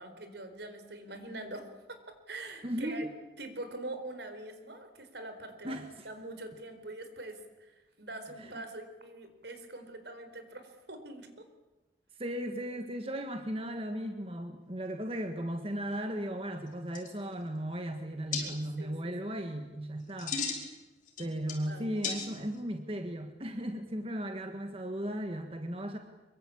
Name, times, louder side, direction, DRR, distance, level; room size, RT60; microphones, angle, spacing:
voice 1, 0.0-2.0 2.3-3.1 3.4-5.8 6.0-11.5 18.4-19.1 21.7-22.2, right 2 dB, 70° right, 8 dB, 4.5 m, -44 dB
voice 2, 2.6-3.1 5.6-5.9 8.5-8.6 12.2-20.7 21.2-26.0, equal, 30° right, 5 dB, 1.7 m, -36 dB
sound 1, 16.7-16.8 16.9-17.5 18.3-18.4 20.0-20.7 21.1-21.7 22.0-22.6, left 5 dB, 45° left, 5.3 m, -35 dB
25.5 x 23.0 x 8.7 m, 1.1 s
head